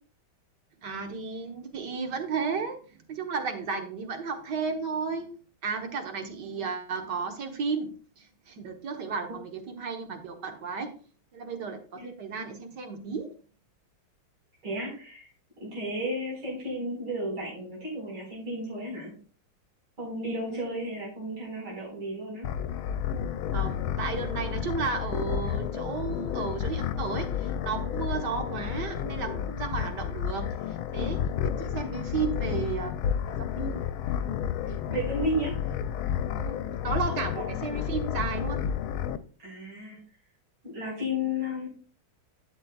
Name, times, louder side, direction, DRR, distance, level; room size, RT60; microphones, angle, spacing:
voice 1, 0.8-5.3 5.6-10.9 11.3-13.3 20.4-20.9 23.5-32.9 33.3-33.9 34.2-34.4 36.3-36.6 36.8-38.7 40.9-41.0, right 5 dB, 55° right, 5 dB, 1.8 m, -34 dB
voice 2, 14.6-15.3 15.6-19.1 20.0-22.5 31.8-32.3 34.6-35.7 37.0-37.2 39.4-40.0 40.6-41.7, equal, 80° right, -4 dB, 5.7 m, -33 dB
sound 1, 22.4-39.2, left 9 dB, 80° left, 1.4 m, -31 dB
11.5 x 8.8 x 2.4 m, 0.40 s
omnidirectional pair, 2.3 m